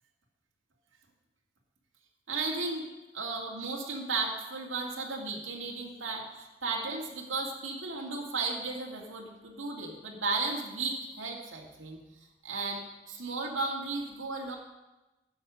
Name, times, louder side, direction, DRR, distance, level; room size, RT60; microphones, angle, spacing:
voice 1, 2.3-2.9 3.1-12.0 12.4-14.6, right 3 dB, 90° right, -1 dB, 2.1 m, -34 dB
11.0 x 8.5 x 6.3 m, 1.1 s
head